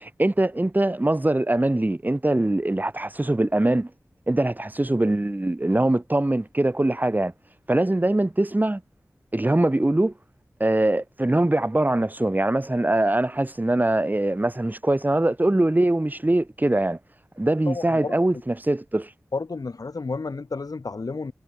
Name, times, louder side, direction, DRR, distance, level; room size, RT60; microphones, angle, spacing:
voice 1, 0.0-3.9 4.3-7.3 7.7-8.8 9.3-10.1 10.6-17.0 17.4-19.1, right 1 dB, 30° right, 4.5 m, -22 dB
voice 2, 17.7-18.1 19.3-21.3, left 4 dB, 75° left, 6.1 m, -31 dB
wide cardioid pair, 55°, 6 cm